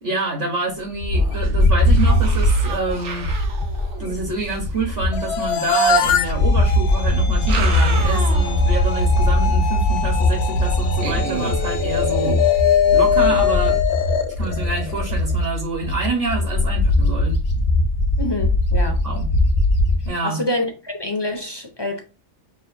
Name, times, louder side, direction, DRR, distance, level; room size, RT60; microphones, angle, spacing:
voice 1, 0.0-3.3 4.0-13.8 14.4-17.4 19.0-19.3 20.1-20.4, right 3 dB, 55° right, 1.0 m, -27 dB
Bird, 1.0-5.5 5.9-20.1, left 1 dB, 85° left, 1.3 m, -20 dB
sound 1, 1.1-1.5 1.8-4.7 6.1-6.2 7.2-8.7 9.1-9.2 11.0-13.8, right 3 dB, 75° right, 1.2 m, -31 dB
sound 2, 5.1-15.3, left 7 dB, 70° left, 0.8 m, -22 dB
voice 2, 18.2-19.0 20.2-22.0, left 1 dB, 40° left, 0.4 m, -26 dB
5.8 x 2.5 x 2.5 m
omnidirectional pair, 1.2 m